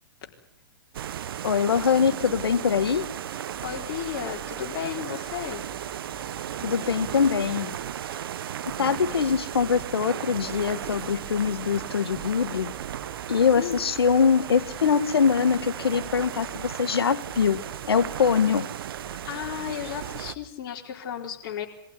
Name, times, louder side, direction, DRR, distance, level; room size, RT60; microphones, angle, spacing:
sound 1, 0.9-20.4, right 10 dB, 70° right, 0.8 m, -35 dB
voice 1, 1.4-3.1 6.6-7.8 8.8-12.7 13.3-17.6 17.9-18.6, left 6 dB, 90° left, 12 dB, 1.5 m, -23 dB
sound 2, 1.5-20.5, equal, 15° right, 4.9 m, -51 dB
voice 2, 3.6-5.6 13.6-13.9 19.1-21.7, left 10 dB, 55° left, 1 dB, 4.3 m, -34 dB
22.0 x 15.5 x 9.7 m, 0.78 s
hypercardioid pair, 130°, 12 cm